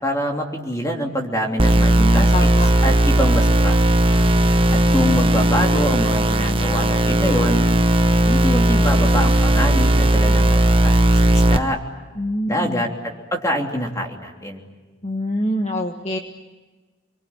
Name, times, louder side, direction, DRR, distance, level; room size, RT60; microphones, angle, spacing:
voice 1, 0.0-2.5 2.8-3.8 4.7-7.7 8.3-11.8 12.4-14.6, equal, 15° left, 1 dB, 3.3 m, -25 dB
sound 1, 1.6-11.6, right 1 dB, 25° right, 1.1 m, -16 dB
voice 2, 2.0-2.7 12.2-12.8 15.0-16.2, equal, 30° left, 3 dB, 1.6 m, -25 dB
29.5 x 22.5 x 8.9 m, 1.3 s
head